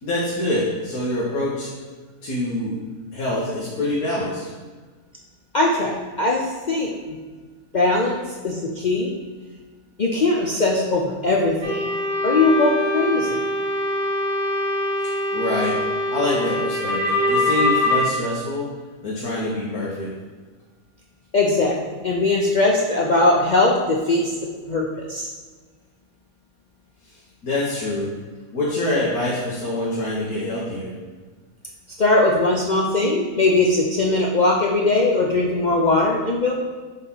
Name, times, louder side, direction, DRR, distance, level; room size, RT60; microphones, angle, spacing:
voice 1, 0.0-1.7 2.2-2.8 3.1-4.4 15.0-15.8 16.1-18.7 19.0-20.1 27.4-28.1 28.5-30.9, left 1 dB, 90° left, -6 dB, 1.7 m, -25 dB
voice 2, 5.5-7.2 7.7-9.1 10.0-11.9 12.2-13.4 21.3-24.3 24.7-25.3 32.0-36.5, left 2 dB, 55° left, -2 dB, 0.5 m, -20 dB
sound 1, 11.6-18.0, left 1 dB, 20° right, 1.5 m, -23 dB
5.3 x 4.1 x 5.7 m, 1.4 s
omnidirectional pair, 1.5 m